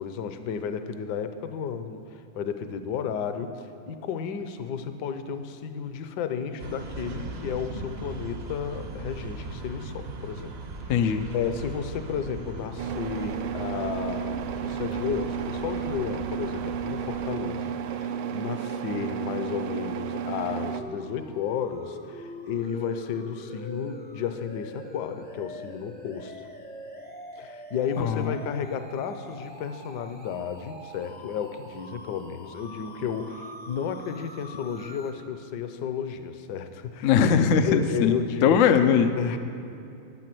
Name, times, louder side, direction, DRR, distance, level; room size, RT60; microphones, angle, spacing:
voice 1, 0.0-10.5 11.3-26.5 27.4-37.2 37.6-38.6 39.2-39.4, left 7 dB, 65° left, 9 dB, 1.2 m, -33 dB
sound 1, 6.6-17.4, right 3 dB, 50° right, 0.7 m, -39 dB
voice 2, 10.9-11.3 28.0-28.3 37.0-39.2, left 7 dB, 80° left, 9 dB, 0.7 m, -21 dB
sound 2, 12.8-20.8, right 8 dB, 85° right, 1.4 m, -32 dB
sound 3, 20.2-35.1, left 1 dB, 10° left, 0.4 m, -44 dB
12.0 x 9.2 x 7.7 m, 2.7 s
omnidirectional pair, 2.2 m